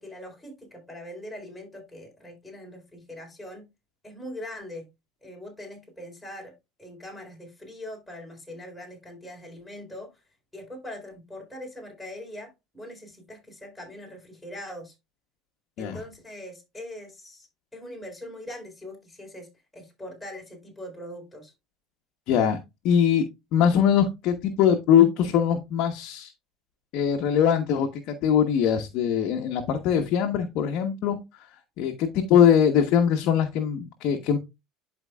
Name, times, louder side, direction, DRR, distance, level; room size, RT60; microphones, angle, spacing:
voice 1, 0.0-3.7 4.0-4.8 5.2-6.5 6.8-10.2 10.5-14.9 15.8-21.5, left 1 dB, 10° left, 0 dB, 3.9 m, -42 dB
voice 2, 22.3-22.6 22.8-23.2 23.5-26.3 26.9-27.9 28.2-31.2 31.8-34.4, left 8 dB, 60° left, 4 dB, 1.1 m, -22 dB
11.0 x 4.6 x 2.4 m, 0.23 s
supercardioid pair, 105°, 0 cm